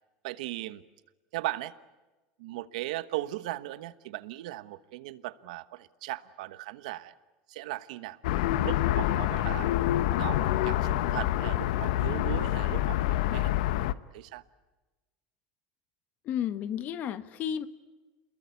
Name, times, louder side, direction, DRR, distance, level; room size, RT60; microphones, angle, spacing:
voice 1, 0.2-0.8 1.3-1.7 2.4-7.1 7.5-8.2 8.6-9.7 10.2-13.5 14.1-14.4, right 16 dB, 90° right, 14 dB, 1.2 m, -37 dB
sound 1, 8.2-13.9, left 13 dB, 85° left, 0.9 m, -27 dB
voice 2, 16.2-17.7, left 9 dB, 45° left, 12 dB, 1.4 m, -32 dB
29.0 x 21.5 x 8.3 m, 1.2 s
supercardioid pair, 135°, 4 cm